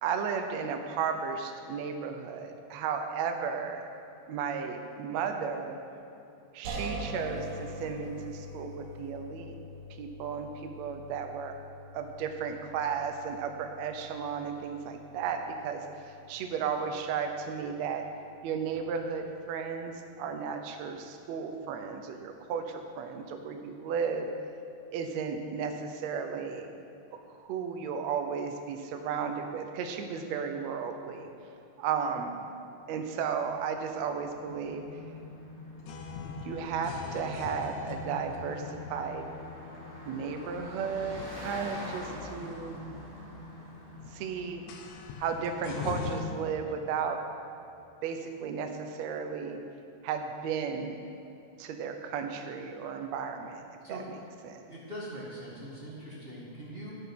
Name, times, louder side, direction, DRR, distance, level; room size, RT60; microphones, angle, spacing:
voice 1, 0.0-3.9 4.3-5.8 6.5-9.5 10.0-11.5 11.9-15.4 15.6-15.8 16.3-18.0 18.4-24.3 24.9-26.7 27.4-31.3 31.8-32.4 32.9-34.8 36.4-38.6 38.9-39.2 40.0-42.8 44.1-44.6 45.2-47.2 48.0-49.6 50.0-51.0 51.6-54.6, right 6 dB, 75° right, 5 dB, 1.6 m, -34 dB
sound 1, 6.6-19.7, equal, 55° right, 3.9 m, -45 dB
Car passing by, 32.9-46.1, left 1 dB, 10° left, 1.3 m, -48 dB
sound 2, 34.4-46.2, left 5 dB, 70° left, 1.7 m, -42 dB
voice 2, 54.6-57.0, equal, 35° right, -6 dB, 0.9 m, -42 dB
12.0 x 9.1 x 5.9 m, 2.7 s
omnidirectional pair, 4.1 m